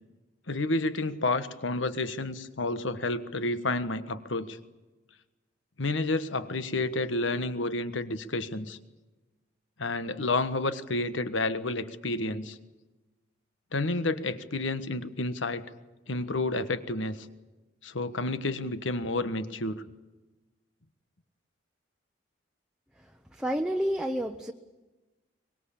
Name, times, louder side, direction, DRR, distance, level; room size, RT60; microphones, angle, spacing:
voice 1, 0.5-4.6 5.8-8.8 9.8-12.6 13.7-15.6 16.1-17.3 17.8-19.8, left 2 dB, 85° left, 12 dB, 1.4 m, -30 dB
voice 2, 23.3-24.5, equal, 5° right, 4 dB, 0.8 m, -29 dB
23.5 x 21.5 x 8.6 m, 1.1 s
head